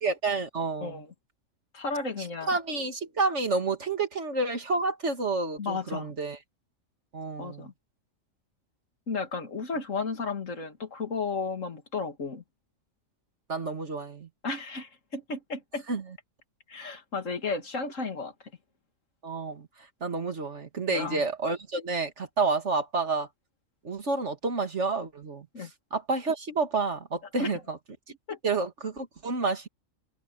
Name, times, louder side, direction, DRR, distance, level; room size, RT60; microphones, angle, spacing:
voice 1, 0.0-1.0 2.2-6.4 7.1-7.7 13.5-14.3 15.9-16.0 19.2-19.7 20.0-23.3 23.8-25.5 25.9-27.8 28.4-29.7, right 3 dB, 60° right, 2.5 m, -29 dB
voice 2, 0.8-1.1 1.7-2.5 5.6-6.1 7.4-7.7 9.1-12.4 14.4-15.8 16.7-18.3 20.9-21.2 25.5-25.7 27.4-27.5 28.3-28.4, left 4 dB, 70° left, 2.6 m, -33 dB
open air
omnidirectional pair, 1.4 m